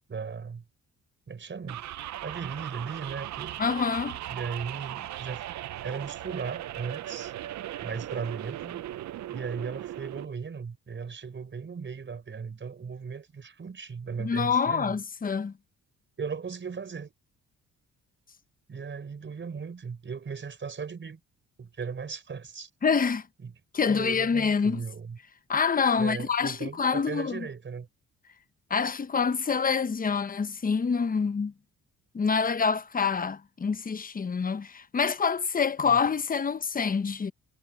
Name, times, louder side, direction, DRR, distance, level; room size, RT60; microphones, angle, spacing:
voice 1, 0.1-0.6 1.3-1.8 2.2-3.6 4.3-5.5 5.8-7.3 7.8-8.8 9.3-15.0 16.2-17.1 18.7-21.2 21.6-22.7 23.4-23.5 23.9-25.2 26.0-27.9 35.9-36.0, right 5 dB, 40° right, 5.5 m, -37 dB
sound 1, 1.7-10.3, right 13 dB, 70° right, 0.7 m, -38 dB
voice 2, 3.6-4.2 14.2-15.5 22.8-23.3 23.7-24.8 25.5-27.5 28.7-31.5 32.1-37.3, left 5 dB, 30° left, 1.0 m, -26 dB
cardioid pair, 90°, 30 cm